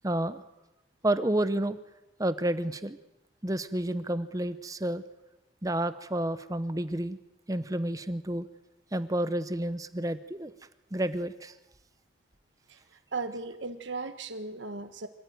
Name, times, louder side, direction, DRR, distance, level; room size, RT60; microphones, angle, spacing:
voice 1, 0.0-0.4 1.0-1.8 2.2-3.0 3.4-5.0 5.6-7.2 7.5-8.5 8.9-10.5 10.9-11.5, right 1 dB, 20° right, 12 dB, 0.8 m, -30 dB
voice 2, 13.1-15.1, right 3 dB, 75° right, 8 dB, 1.4 m, -36 dB
25.5 x 15.5 x 9.5 m, 1.0 s
head